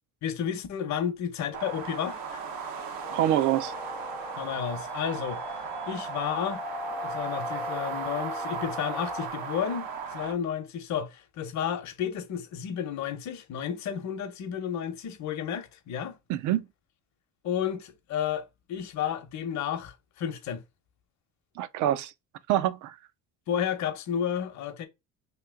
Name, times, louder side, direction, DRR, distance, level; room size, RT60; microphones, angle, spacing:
voice 1, 0.2-2.4 4.3-5.4 5.9-6.6 7.0-16.2 17.4-20.6 23.5-24.9, left 8 dB, 55° left, 0.8 m, -32 dB
sound 1, 1.5-10.3, right 6 dB, 85° right, 0.9 m, -37 dB
sound 2, 3.0-9.3, left 3 dB, 5° left, 0.4 m, -39 dB
voice 2, 3.1-3.7 16.3-16.7 21.6-22.1 22.5-23.0, right 12 dB, 60° right, 0.5 m, -25 dB
3.0 x 2.8 x 3.5 m
cardioid pair, 145°, 34 cm